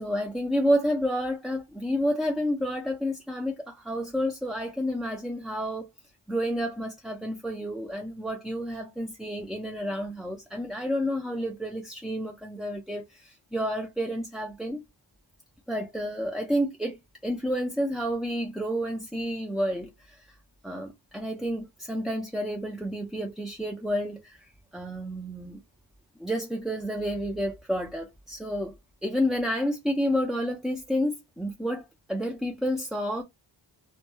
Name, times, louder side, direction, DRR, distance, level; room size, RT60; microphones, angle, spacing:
voice 1, 0.0-5.9 6.3-14.8 15.7-20.3 20.6-25.6 26.2-28.8 29.0-33.2, equal, ahead, 0.3 m, -30 dB
2.1 x 2.1 x 3.0 m
wide cardioid pair, 80°, 47 cm